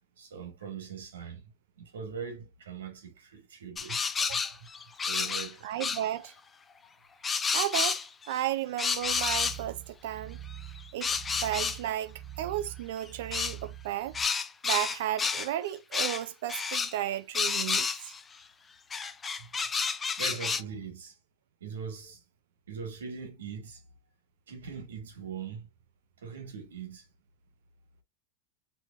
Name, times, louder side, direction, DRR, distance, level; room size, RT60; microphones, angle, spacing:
voice 1, 0.2-1.4 1.8-4.4 5.0-5.7 19.4-19.5 20.1-21.2 21.6-22.2 22.7-23.8 24.5-25.7 26.2-27.1, right 6 dB, 85° right, 2.0 m, -41 dB
sound 1, 3.8-5.5 5.8-6.1 7.2-8.4 8.8-9.6 10.6-11.8 13.3-13.6 14.1-15.5 15.9-16.2 16.5-16.9 17.3-18.2 18.9-20.6, left 5 dB, 20° left, 0.5 m, -30 dB
voice 2, 4.2-4.5 5.6-6.3 7.5-10.4 10.9-14.1 14.6-18.1, right 12 dB, 70° right, 0.5 m, -34 dB
sound 2, 8.9-14.3, right 12 dB, 5° right, 1.4 m, -45 dB
6.1 x 3.2 x 2.6 m
hypercardioid pair, 105°, 0 cm